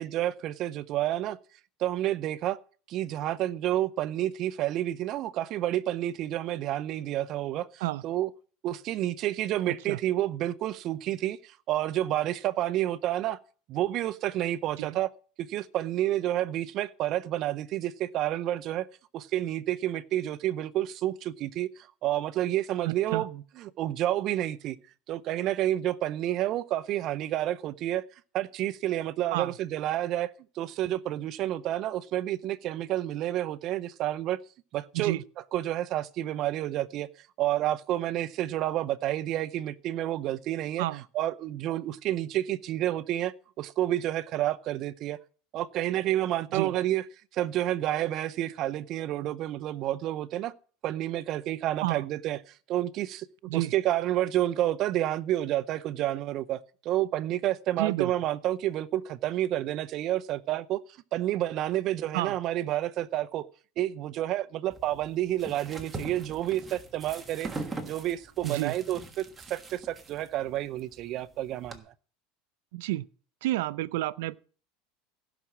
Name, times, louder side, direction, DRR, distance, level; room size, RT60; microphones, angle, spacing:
voice 1, 0.0-1.4 1.8-2.6 2.9-8.3 8.6-13.4 13.7-15.1 15.4-18.9 19.1-24.8 25.1-28.0 28.3-30.3 30.6-34.4 34.7-35.2 35.5-37.1 37.4-40.8 41.1-45.2 45.5-47.0 47.3-50.5 50.8-53.3 53.5-60.8 61.1-63.5 63.8-67.5 67.8-71.9, right 13 dB, 40° right, 0.6 m, -29 dB
voice 2, 22.8-23.2 29.3-29.5 34.9-35.2 40.8-41.0 46.5-46.7 51.8-52.1 53.5-53.7 57.8-58.1 62.1-62.4 68.4-68.7 72.7-73.1 73.4-74.3, right 17 dB, 80° right, 0.5 m, -30 dB
sound 1, 64.7-71.8, right 3 dB, 15° right, 1.4 m, -42 dB
15.5 x 6.0 x 7.3 m
supercardioid pair, 150°, 0 cm